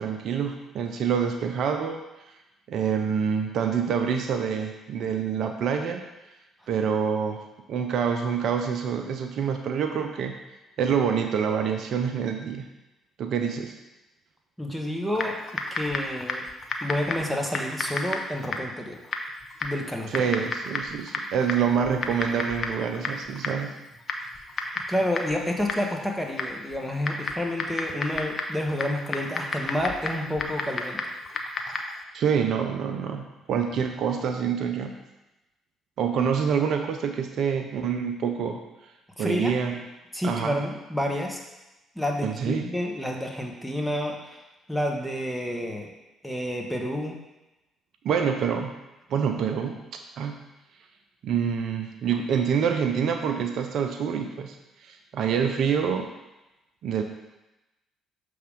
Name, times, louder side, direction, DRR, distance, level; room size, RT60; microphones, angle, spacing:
voice 1, 0.0-2.0 2.7-6.0 6.7-7.4 7.7-10.4 10.8-12.7 13.2-13.7 20.1-23.7 32.1-35.0 36.0-38.6 39.2-39.8 40.2-40.6 42.2-42.7 48.0-48.7 49.1-49.8 50.2-50.4 51.2-54.5 54.8-56.1 56.8-57.0, right 7 dB, 65° right, 5 dB, 0.5 m, -26 dB
voice 2, 14.6-15.4 15.7-16.4 16.8-19.0 19.6-20.3 24.9-31.0 39.2-39.6 40.1-41.4 41.9-44.4 44.7-45.9 46.2-47.2, left 1 dB, 5° left, 1 dB, 1.3 m, -29 dB
Typing, 15.1-32.0, left 3 dB, 50° left, 0.8 m, -33 dB
6.7 x 3.5 x 5.0 m, 0.99 s
hypercardioid pair, 50°, 0 cm